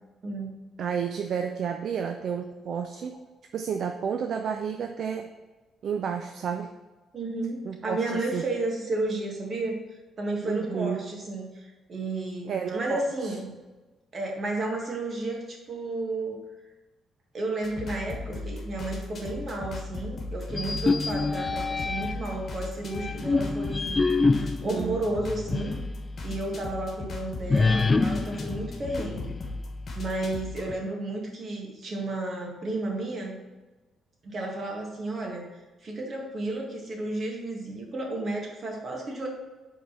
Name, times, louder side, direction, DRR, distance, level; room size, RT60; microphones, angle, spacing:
voice 1, 0.2-0.6 7.1-13.5 14.1-16.4 17.3-24.0 24.6-25.8 26.2-29.3 29.9-33.4 34.2-39.3, right 2 dB, 45° right, 0 dB, 1.8 m, -32 dB
voice 2, 0.8-3.2 3.5-5.3 5.8-6.7 7.6-8.4 10.4-11.1 12.5-13.3 24.6-25.0, right 7 dB, 60° right, 5 dB, 0.5 m, -31 dB
sound 1, 17.6-30.7, left 3 dB, 45° left, 1.4 m, -37 dB
sound 2, 20.5-22.3 22.9-25.9 26.3-26.4 27.5-29.6, left 3 dB, 30° left, 0.4 m, -26 dB
5.2 x 4.0 x 6.0 m, 1.2 s
cardioid pair, 90°, 0 cm